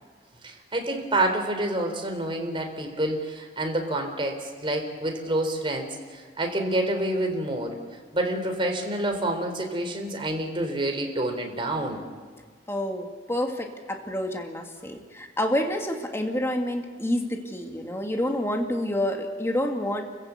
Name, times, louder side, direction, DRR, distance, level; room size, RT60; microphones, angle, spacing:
voice 1, 0.4-5.9 6.1-7.7 8.1-12.0, right 1 dB, 30° right, 3 dB, 3.9 m, -28 dB
voice 2, 12.7-20.0, left 1 dB, 15° left, 3 dB, 2.2 m, -28 dB
30.0 x 15.5 x 8.4 m, 1.5 s
head